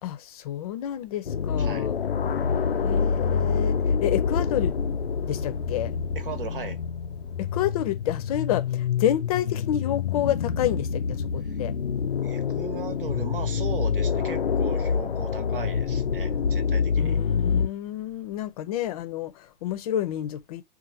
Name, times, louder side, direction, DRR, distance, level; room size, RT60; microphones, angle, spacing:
voice 1, 0.0-1.9 2.8-4.8 5.2-6.0 7.4-11.7 17.0-20.6, left 11 dB, 40° left, 0.6 m, -29 dB
sound 1, 1.2-17.7, left 6 dB, 80° left, 0.5 m, -26 dB
voice 2, 1.6-1.9 6.1-6.8 11.5-11.6 12.2-17.2, right 5 dB, 65° right, 1.1 m, -37 dB
4.2 x 2.4 x 2.7 m
figure-of-eight pair, 105°, 29 cm